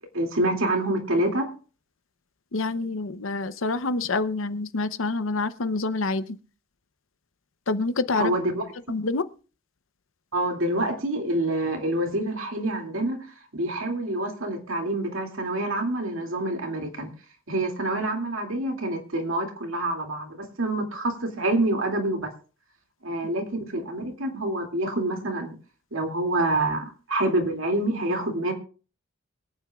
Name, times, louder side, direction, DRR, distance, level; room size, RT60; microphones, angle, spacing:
voice 1, 0.1-1.5 8.1-8.6 10.3-13.3 13.5-17.1 17.5-22.3 23.0-25.5 25.9-28.5, right 1 dB, 75° right, 2 dB, 2.5 m, -27 dB
voice 2, 2.5-6.2 7.7-8.3 8.9-9.3, left 3 dB, 70° left, 13 dB, 0.8 m, -27 dB
23.5 x 8.9 x 2.4 m, 0.38 s
head